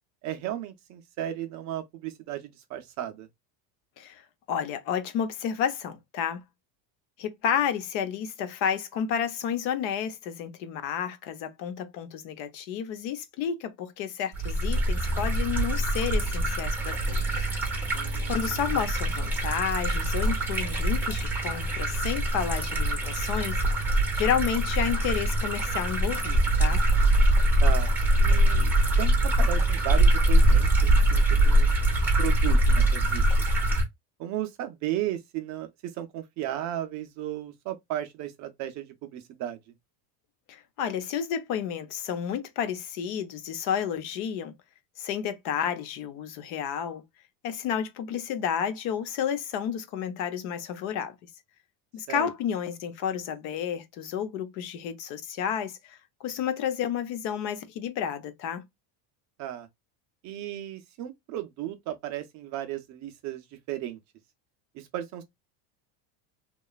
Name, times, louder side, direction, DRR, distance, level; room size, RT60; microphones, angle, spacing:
voice 1, 0.2-3.3 17.9-18.6 27.6-31.7 32.2-33.2 34.2-39.6 52.1-52.3 59.4-59.7 60.2-63.4 63.7-64.0 64.7-65.2, right 12 dB, 40° right, 0.4 m, -35 dB
voice 2, 4.5-6.4 7.2-17.2 18.3-26.8 40.5-44.5 45.0-47.0 47.4-51.1 51.9-58.6, left 8 dB, 60° left, 0.8 m, -31 dB
sound 1, 14.3-33.8, right 1 dB, 5° right, 0.7 m, -23 dB
3.0 x 2.2 x 2.3 m
cardioid pair, 150°, 47 cm